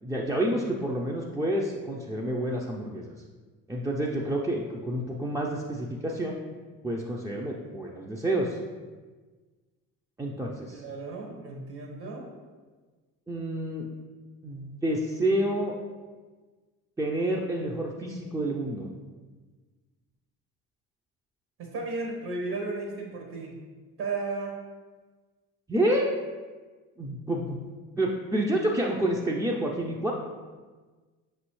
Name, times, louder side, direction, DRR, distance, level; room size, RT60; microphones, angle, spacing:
voice 1, 0.0-3.2 3.7-6.4 6.8-8.6 10.2-10.8 13.3-13.9 14.4-15.7 17.0-18.9 25.7-26.1 27.0-27.6 28.0-30.1, right 1 dB, 10° right, -2 dB, 0.3 m, -29 dB
voice 2, 10.7-12.3 21.6-23.5 24.0-24.5, right 3 dB, 65° right, 0 dB, 1.2 m, -34 dB
5.3 x 3.0 x 3.0 m, 1.4 s
hypercardioid pair, 60°, 43 cm